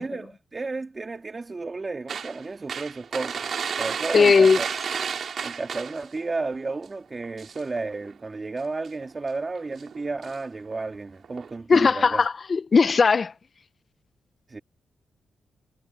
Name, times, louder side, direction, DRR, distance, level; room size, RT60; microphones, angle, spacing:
voice 1, 0.0-3.5 3.8-4.7 5.4-12.2 14.5-14.6, right 3 dB, 25° right, 2.3 m, -32 dB
sound 1, 2.1-6.3 6.6-6.9 7.1-8.1 8.8-9.1 9.7-10.4 10.7-10.8 11.2-11.6, right 6 dB, 55° right, 5.2 m, -32 dB
voice 2, 4.1-4.6 11.7-13.3, left 5 dB, 40° left, 0.6 m, -18 dB
wide cardioid pair, 125°, 0 cm